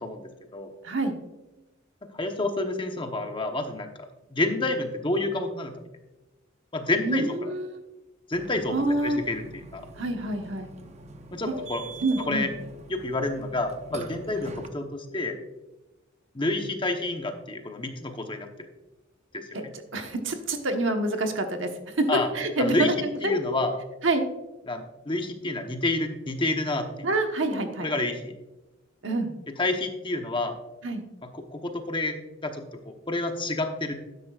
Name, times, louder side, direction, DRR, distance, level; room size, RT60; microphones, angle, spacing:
voice 1, 0.0-0.7 2.0-5.7 6.7-7.5 8.3-9.9 11.3-11.8 12.3-12.5 12.9-15.4 16.3-18.5 19.3-19.7 22.1-22.3 22.6-22.9 23.2-23.8 24.7-27.1 27.5-28.3 29.6-30.6 31.2-32.2 32.4-33.9, left 2 dB, 25° left, 5 dB, 1.0 m, -29 dB
voice 2, 0.8-1.1 7.0-7.8 8.7-9.2 10.0-10.7 11.4-11.5 12.0-12.5 14.4-14.5 19.5-19.6 19.9-21.7 21.9-22.9 23.2-23.3 24.0-24.3 27.0-27.9 29.0-29.3 30.8-31.0, right 2 dB, 65° right, 5 dB, 1.2 m, -27 dB
Burping eructation, 8.3-14.7, right 2 dB, 35° right, 0.7 m, -43 dB
12.5 x 10.0 x 2.4 m, 1.0 s
head